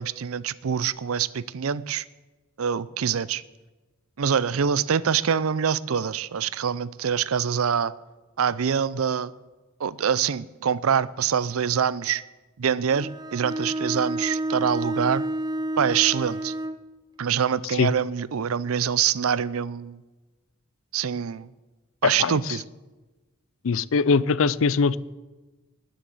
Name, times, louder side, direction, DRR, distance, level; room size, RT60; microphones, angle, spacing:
voice 1, 0.0-2.0 2.6-3.4 4.2-7.9 8.4-9.3 9.8-12.2 12.6-15.2 15.8-16.5 17.2-20.0 20.9-21.5 22.0-22.6, right 7 dB, 90° right, 0.5 m, -25 dB
Bowed string instrument, 12.9-16.9, right 1 dB, 20° right, 0.5 m, -29 dB
voice 2, 22.0-22.6 23.6-25.0, left 5 dB, 70° left, 0.5 m, -22 dB
19.5 x 7.0 x 7.8 m
head